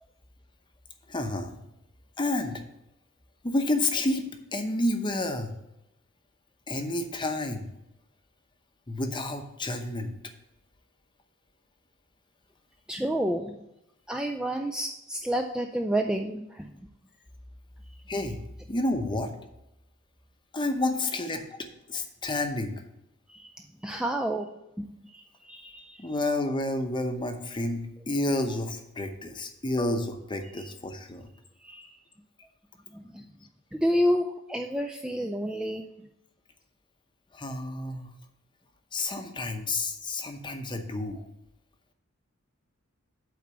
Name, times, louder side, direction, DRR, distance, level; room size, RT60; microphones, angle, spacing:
voice 1, 1.1-1.6 2.2-2.6 3.4-4.2 4.5-5.5 6.7-7.7 8.9-10.1 18.1-18.4 18.7-19.3 20.5-21.4 21.9-22.7 26.0-31.3 37.3-38.1 38.9-41.3, left 2 dB, 20° left, 6 dB, 0.7 m, -30 dB
voice 2, 12.9-13.6 14.1-16.8 23.3-24.5 24.8-26.1 31.6-32.0 32.9-33.3 33.7-35.8, equal, 5° right, 3 dB, 0.3 m, -30 dB
8.4 x 4.0 x 6.7 m, 0.87 s
head